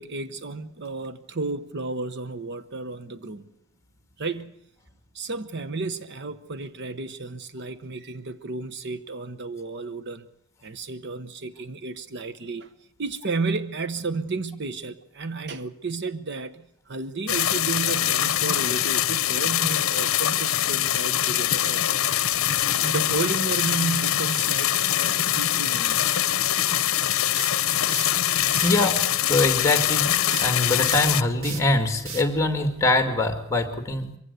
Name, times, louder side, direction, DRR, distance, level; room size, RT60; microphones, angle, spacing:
voice 1, 0.0-3.5 4.2-4.5 5.1-10.3 10.6-12.7 13.0-22.0 22.8-26.0 28.8-28.9, right 3 dB, 55° right, 12 dB, 0.9 m, -32 dB
sound 1, 17.3-31.2, left 12 dB, 75° left, 0.8 m, -23 dB
sound 2, 27.4-28.2 28.5-28.8 30.3-33.3, right 5 dB, 80° right, 2.3 m, -36 dB
voice 2, 28.6-34.1, left 2 dB, 15° left, 7 dB, 2.2 m, -23 dB
24.0 x 16.0 x 8.2 m, 0.72 s
head